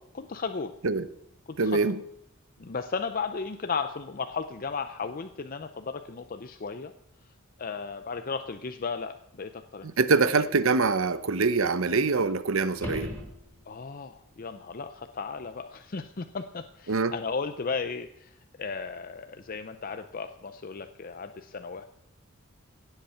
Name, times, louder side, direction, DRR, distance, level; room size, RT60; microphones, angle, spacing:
voice 1, 0.1-0.7 1.5-1.9 2.6-6.9 7.6-10.4 13.7-21.8, left 5 dB, 40° left, 8 dB, 0.6 m, -35 dB
voice 2, 1.6-2.0 10.0-13.1 16.9-17.1, right 4 dB, 70° right, 14 dB, 0.8 m, -24 dB
sound 1, 12.7-13.9 18.8-18.9, left 1 dB, 10° left, 2.7 m, -37 dB
17.0 x 8.1 x 5.7 m, 0.75 s
head